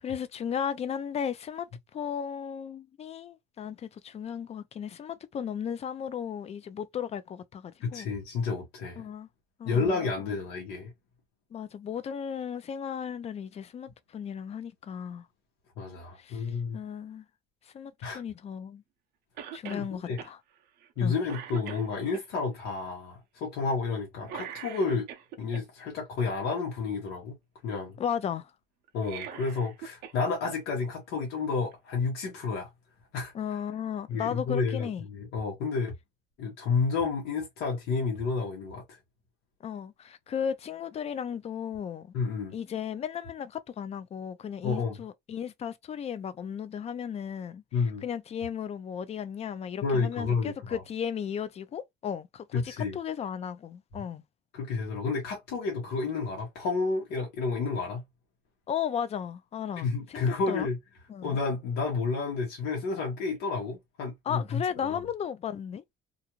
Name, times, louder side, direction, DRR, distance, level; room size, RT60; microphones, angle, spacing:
voice 1, 0.0-1.7 1.9-8.1 9.0-9.3 9.6-10.0 11.5-15.3 16.2-16.5 16.7-17.3 17.7-18.8 19.5-20.4 21.0-21.1 28.0-28.5 33.3-35.0 39.6-42.1 42.5-47.6 48.0-54.2 58.7-60.7 61.1-61.4 64.3-65.8, left 8 dB, 40° left, 0.4 m, -35 dB
voice 2, 7.8-9.0 9.6-10.9 15.8-16.8 18.0-18.2 19.7-20.2 21.0-25.1 25.4-27.4 27.6-28.0 28.9-32.7 33.1-33.3 34.1-35.9 36.4-39.0 42.1-42.5 44.6-44.9 47.7-48.0 49.8-50.8 52.5-53.0 54.5-58.0 59.8-60.8 61.2-65.0, left 4 dB, 90° left, 1.1 m, -30 dB
Cough, 19.4-19.9 20.2-20.3 20.8-21.0 21.3-22.2 24.2-25.6 28.9-30.2 30.5-30.6 31.7-31.8, right 8 dB, 75° right, 0.5 m, -41 dB
2.5 x 2.4 x 2.9 m
cardioid pair, 110°, 17 cm